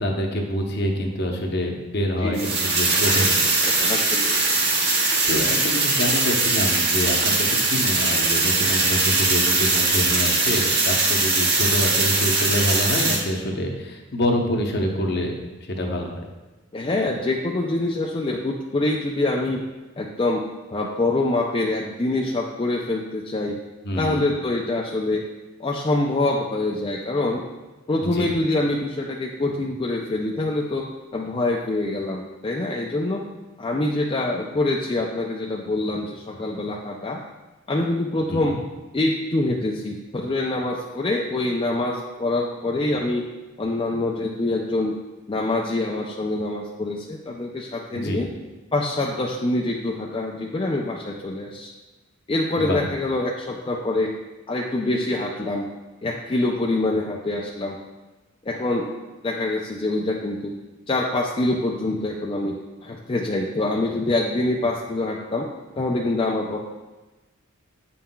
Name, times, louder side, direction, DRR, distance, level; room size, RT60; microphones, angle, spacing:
voice 1, 0.0-3.7 3.9-4.0 5.3-15.3 15.6-16.2 23.8-24.2 28.0-28.3 38.3-38.6 47.9-48.2 52.6-52.8, left 1 dB, 50° left, 2 dB, 0.8 m, -26 dB
sound 1, 2.3-13.1, right 3 dB, 50° right, 1.5 m, -21 dB
voice 2, 3.6-4.4 16.7-19.6 20.0-20.4 20.7-23.6 24.0-25.2 25.6-27.4 27.9-30.8 31.1-33.2 33.6-37.2 37.7-38.6 38.9-43.2 43.6-44.9 45.3-48.3 48.7-51.7 52.3-54.1 54.5-55.7 56.0-57.8 58.4-58.9 59.2-60.5 60.9-62.6 62.8-65.5 65.8-66.6, left 2 dB, 25° left, -1 dB, 0.4 m, -25 dB
8.4 x 5.5 x 2.3 m, 1.1 s
head